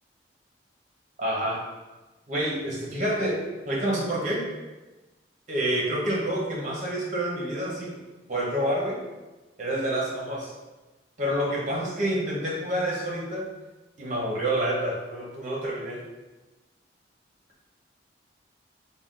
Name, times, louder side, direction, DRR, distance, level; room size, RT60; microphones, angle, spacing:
voice 1, 1.2-1.7 2.3-4.5 5.5-8.0 8.3-9.0 9.6-10.5 11.2-13.5 14.0-16.0, right 1 dB, 40° right, -4 dB, 0.9 m, -28 dB
3.8 x 2.2 x 3.7 m, 1.2 s
head